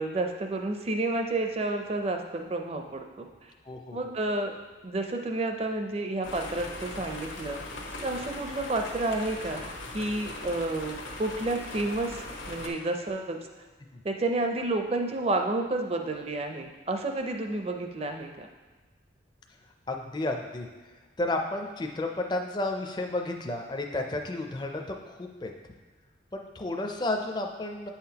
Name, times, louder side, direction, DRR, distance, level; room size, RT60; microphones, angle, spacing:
voice 1, 0.0-3.3 3.9-4.5 4.8-7.6 8.0-9.6 9.9-12.2 12.5-13.4 14.0-18.5, right 2 dB, 30° right, 4 dB, 0.5 m, -30 dB
voice 2, 3.7-4.0 19.9-20.7 21.2-25.5 26.3-27.9, left 2 dB, 20° left, 3 dB, 0.4 m, -32 dB
sound 1, 6.2-12.7, left 2 dB, 85° left, 1.0 m, -39 dB
8.6 x 5.7 x 2.8 m, 1.3 s
head